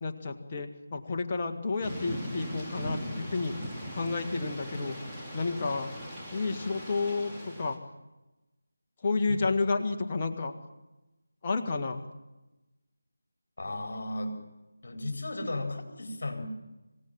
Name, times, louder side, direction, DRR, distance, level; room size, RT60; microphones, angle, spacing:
voice 1, 0.0-3.5 3.9-4.9 5.3-5.9 6.3-7.8 9.0-10.5 11.4-12.0, left 3 dB, 25° left, 3 dB, 1.7 m, -31 dB
Thunder / Rain, 1.8-7.8, equal, ahead, 2.9 m, -39 dB
voice 2, 13.6-14.4 14.8-16.5, left 2 dB, 45° left, 4 dB, 4.3 m, -35 dB
26.0 x 17.0 x 7.4 m, 1.0 s
figure-of-eight pair, 160°, 0 cm